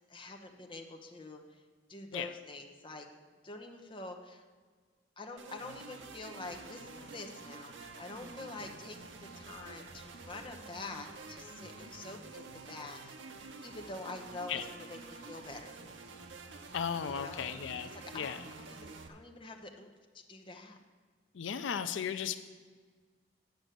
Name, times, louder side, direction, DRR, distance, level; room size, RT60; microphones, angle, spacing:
voice 1, 0.1-1.6 1.9-3.1 3.4-4.4 5.2-13.2 13.6-15.8 17.1-17.5 17.9-19.9 20.1-20.8, left 2 dB, 25° left, 3 dB, 0.8 m, -46 dB
sound 1, 5.4-19.1, right 3 dB, 90° right, 0.8 m, -49 dB
voice 2, 16.7-18.4 21.3-22.4, left 7 dB, 85° left, 10 dB, 0.5 m, -36 dB
9.3 x 6.1 x 6.6 m, 1.5 s
head